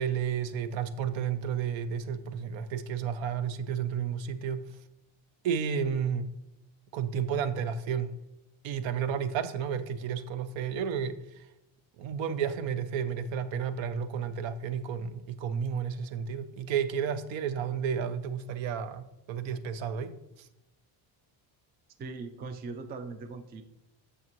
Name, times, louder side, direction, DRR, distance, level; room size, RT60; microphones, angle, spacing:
voice 1, 0.0-4.6 5.4-6.4 6.9-8.2 8.6-11.5 12.0-20.5, right 7 dB, 65° right, 0.7 m, -32 dB
voice 2, 22.0-23.6, right 4 dB, 25° right, 0.3 m, -40 dB
8.3 x 6.6 x 3.0 m
cardioid pair, 145°, 49 cm